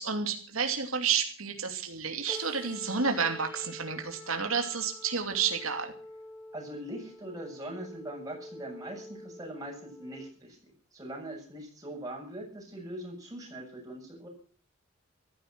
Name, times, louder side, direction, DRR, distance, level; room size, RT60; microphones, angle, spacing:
voice 1, 0.0-5.9, right 6 dB, 85° right, 4 dB, 2.7 m, -30 dB
sound 1, 2.3-10.3, left 1 dB, 25° left, 4.7 m, -47 dB
voice 2, 6.5-10.6 10.9-14.3, right 1 dB, 15° right, -1 dB, 7.6 m, -41 dB
15.5 x 14.5 x 6.0 m, 0.43 s
head